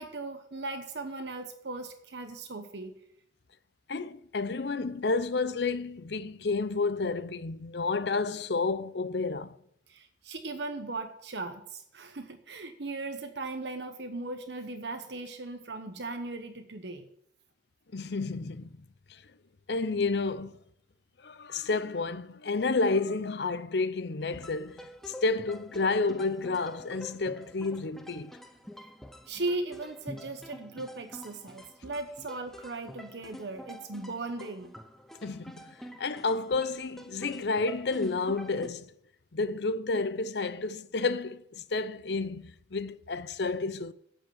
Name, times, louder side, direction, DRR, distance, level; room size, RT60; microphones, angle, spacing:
voice 1, 0.0-2.9 9.9-17.1 29.3-34.7, right 2 dB, 70° right, 1.0 m, -38 dB
voice 2, 3.9-9.6 17.9-18.8 19.1-19.2 19.7-20.6 21.2-28.3 35.2-38.9 39.3-43.9, left 3 dB, 70° left, 0.7 m, -30 dB
sound 1, 24.2-38.7, equal, ahead, 0.6 m, -47 dB
8.8 x 7.7 x 8.7 m
head